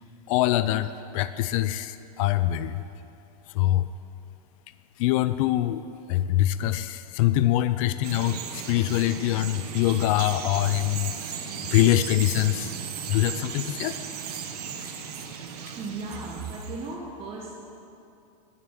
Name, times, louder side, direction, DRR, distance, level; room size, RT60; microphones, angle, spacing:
voice 1, 0.3-2.8 3.5-3.9 5.0-5.8 6.1-11.4 11.7-12.7 13.1-14.0, left 14 dB, 60° left, 13 dB, 0.6 m, -24 dB
Bird vocalization bird call bird song, 8.0-16.9, right 7 dB, 85° right, 1.5 m, -36 dB
voice 2, 15.8-17.6, right 3 dB, 30° right, -2 dB, 1.6 m, -35 dB
11.0 x 10.0 x 7.6 m, 2.6 s
supercardioid pair, 140°, 19 cm